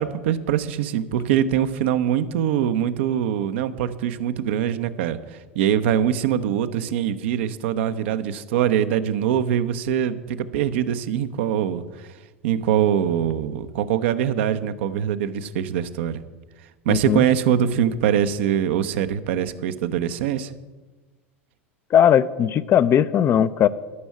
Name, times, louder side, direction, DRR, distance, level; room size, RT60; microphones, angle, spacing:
voice 1, 0.0-12.1 12.4-16.2 16.8-20.5, right 9 dB, 65° right, 10 dB, 0.7 m, -23 dB
voice 2, 16.9-17.2 21.9-23.7, left 9 dB, 35° left, 14 dB, 0.5 m, -18 dB
12.5 x 6.2 x 8.4 m, 1.3 s
figure-of-eight pair, 80°, 7 cm